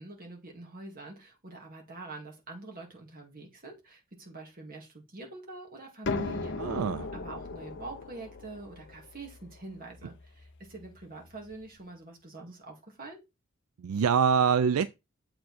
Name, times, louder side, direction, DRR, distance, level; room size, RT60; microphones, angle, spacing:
voice 1, 0.0-13.2, right 2 dB, 40° right, 2.2 m, -45 dB
sound 1, 6.1-11.6, left 3 dB, 55° left, 0.7 m, -38 dB
voice 2, 6.6-7.1 13.8-14.9, right 6 dB, 70° right, 0.4 m, -24 dB
7.5 x 4.7 x 4.2 m
head